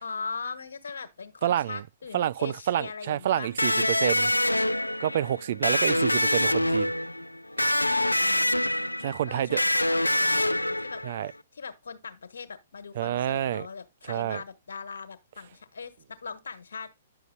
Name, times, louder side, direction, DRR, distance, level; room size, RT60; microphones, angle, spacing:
voice 1, 0.0-3.5 5.6-6.1 8.2-16.9, left 5 dB, 65° left, 1.4 m, -40 dB
voice 2, 1.4-1.8 2.1-4.3 5.0-6.9 7.8-8.1 8.7-9.6 11.0-11.3 13.0-13.7 14.0-14.4, right 11 dB, 50° right, 0.4 m, -28 dB
Electric guitar, 3.6-11.3, left 1 dB, 85° left, 0.4 m, -25 dB
10.5 x 6.7 x 2.3 m
figure-of-eight pair, 115°, 0 cm